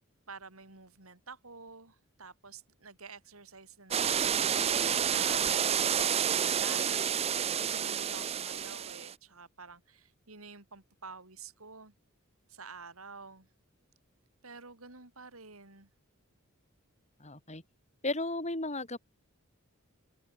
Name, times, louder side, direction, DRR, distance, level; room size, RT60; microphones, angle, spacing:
voice 1, 0.3-7.3 7.6-11.9 12.5-13.5 14.4-15.9, right 4 dB, 85° right, 5.8 m, -50 dB
sound 1, 3.9-9.1, right 8 dB, 30° right, 0.5 m, -29 dB
voice 2, 17.2-17.6 18.0-19.0, left 2 dB, 35° left, 7.0 m, -34 dB
open air
head